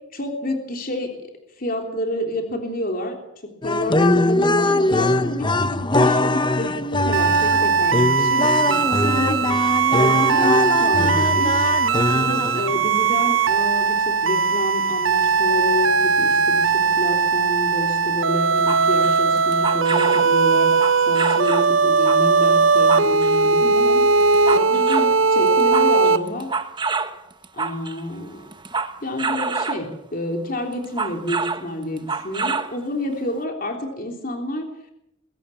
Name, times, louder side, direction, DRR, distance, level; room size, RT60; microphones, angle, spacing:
voice 1, 0.1-1.2 1.6-3.2 3.4-20.7 21.1-26.5 27.5-28.5 29.0-34.7, left 1 dB, 45° left, 3 dB, 3.4 m, -29 dB
sound 1, 3.6-12.9, left 2 dB, 25° left, 0.9 m, -21 dB
sound 2, 7.1-26.2, right 5 dB, 75° right, 1.0 m, -19 dB
sound 3, 18.6-20.3 20.7-21.7 22.1-23.5 24.0-25.2 25.5-28.0 28.5-29.9 30.7-31.7 32.0-32.8 33.1-33.2, right 4 dB, 25° right, 1.3 m, -27 dB
23.0 x 16.5 x 7.1 m, 0.82 s
head